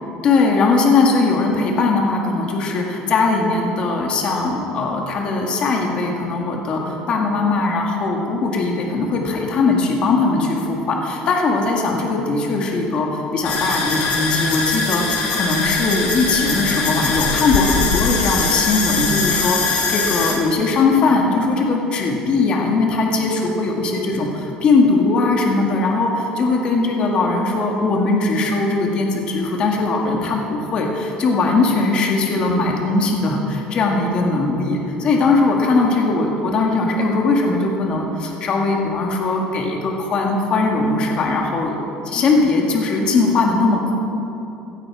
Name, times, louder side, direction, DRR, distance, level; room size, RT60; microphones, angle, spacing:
voice 1, 0.2-41.8 42.1-43.9, left 3 dB, 35° left, 0 dB, 1.8 m, -19 dB
sound 1, 13.4-20.3, left 4 dB, 55° left, 3.0 m, -21 dB
16.0 x 15.5 x 4.8 m, 3.0 s
cardioid pair, 170°, 3 cm